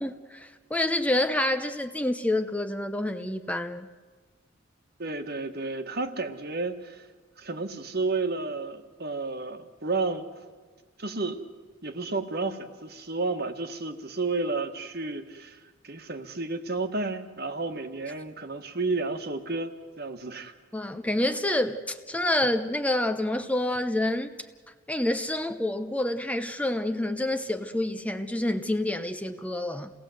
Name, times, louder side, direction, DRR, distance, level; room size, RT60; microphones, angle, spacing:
voice 1, 0.0-3.9 20.7-24.3 24.9-29.9, left 1 dB, 5° left, 8 dB, 0.7 m, -28 dB
voice 2, 5.0-7.0 7.4-10.3 11.0-11.4 11.8-15.6 15.8-20.5, right 3 dB, 55° right, 7 dB, 1.6 m, -31 dB
28.0 x 18.0 x 7.9 m, 1.4 s
head